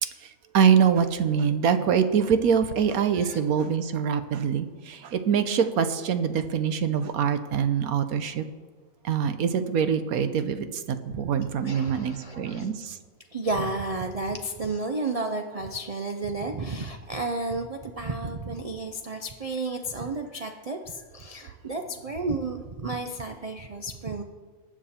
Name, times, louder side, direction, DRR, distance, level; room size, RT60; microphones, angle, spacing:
voice 1, 0.0-8.4 9.0-13.0, right 7 dB, 75° right, 10 dB, 1.2 m, -24 dB
voice 2, 11.6-12.7 13.3-24.2, right 2 dB, 45° right, 4 dB, 0.5 m, -32 dB
19.5 x 7.5 x 4.3 m, 1.5 s
omnidirectional pair, 1.6 m